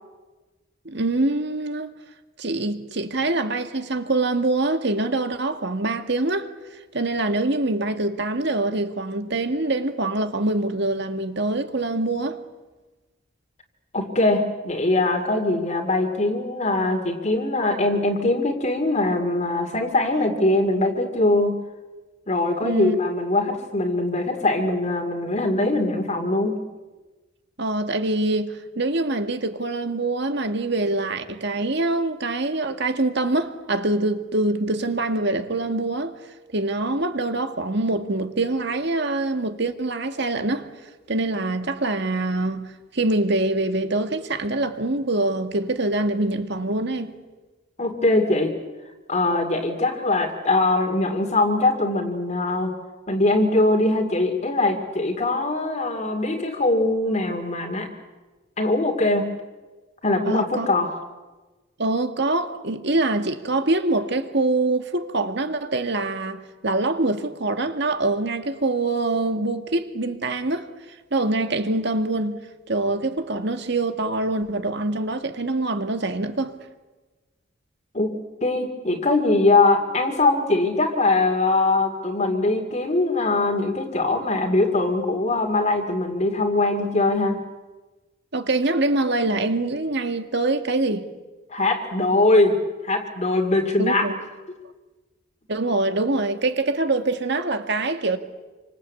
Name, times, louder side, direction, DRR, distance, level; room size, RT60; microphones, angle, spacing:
voice 1, 0.9-1.9 2.4-6.5 6.9-12.4 22.6-23.0 27.6-36.2 36.5-40.7 41.1-42.7 42.9-47.1 60.3-60.7 61.8-70.7 71.1-72.4 72.7-76.5 88.3-91.1 93.8-94.2 95.5-98.2, right 2 dB, 60° right, 1.9 m, -24 dB
voice 2, 13.9-21.6 22.3-26.6 47.8-48.6 49.1-52.7 53.1-57.9 58.6-59.3 60.0-60.9 77.9-87.4 91.5-94.1, left 2 dB, 35° left, 2.4 m, -22 dB
27.5 x 25.0 x 8.4 m
head